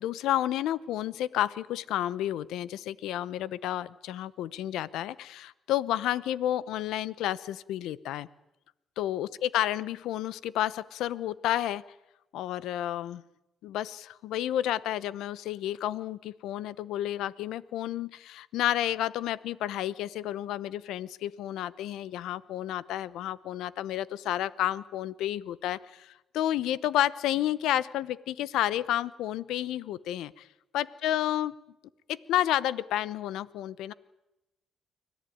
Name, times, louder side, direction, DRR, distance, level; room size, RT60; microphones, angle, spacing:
voice 1, 0.0-8.3 9.0-11.8 12.3-13.2 13.6-30.5 30.7-31.5 32.1-33.9, left 12 dB, 90° left, 18 dB, 0.8 m, -31 dB
25.0 x 17.5 x 9.3 m, 0.92 s
cardioid pair, 90°, 0 cm